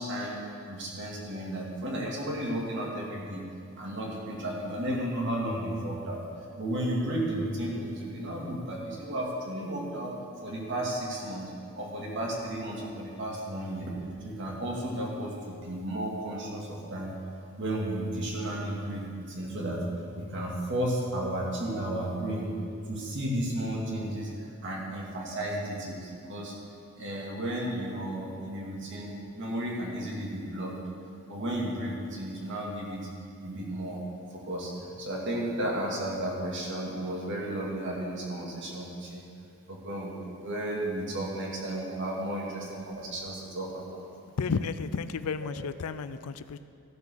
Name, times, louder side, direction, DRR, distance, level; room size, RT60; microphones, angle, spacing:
voice 1, 0.0-3.4 3.8-6.2 6.6-10.1 10.4-11.5 11.7-13.9 14.2-17.1 17.6-19.8 20.1-22.5 22.9-26.5 27.0-30.8 31.3-33.0 33.4-34.0 34.3-39.2 39.7-44.0, right 1 dB, 55° right, -3 dB, 2.4 m, -33 dB
voice 2, 44.4-46.6, left 5 dB, 85° left, 13 dB, 0.5 m, -32 dB
14.5 x 7.0 x 6.3 m, 2.4 s
head